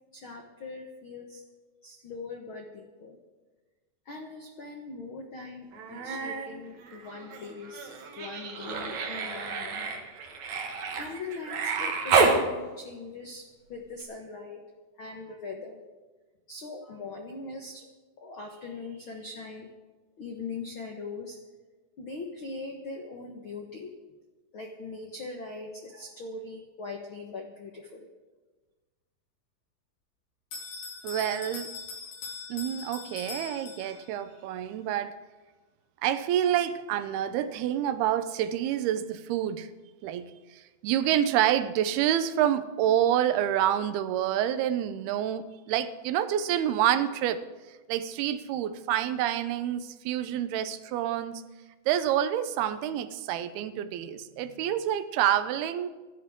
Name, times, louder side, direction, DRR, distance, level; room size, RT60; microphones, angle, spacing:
voice 1, 0.1-1.4 1.8-3.2 4.0-7.9 8.2-10.0 10.3-10.5 10.9-14.6 15.0-15.8 16.5-17.9 18.2-19.7 20.2-21.4 22.0-23.9 24.5-28.1, left 3 dB, 70° left, 2 dB, 1.2 m, -41 dB
Human voice, 5.7-6.5 6.8-12.4 14.0-14.1, right 4 dB, 55° right, 2.8 m, -29 dB
Bell, 30.5-34.2, left 4 dB, 85° left, 5.4 m, -41 dB
voice 2, 31.0-31.7 32.5-35.1 36.0-39.7 40.0-47.4 47.7-51.4 51.9-55.9, right 11 dB, 90° right, 12 dB, 2.8 m, -28 dB
26.0 x 12.5 x 3.7 m, 1.3 s
omnidirectional pair, 4.4 m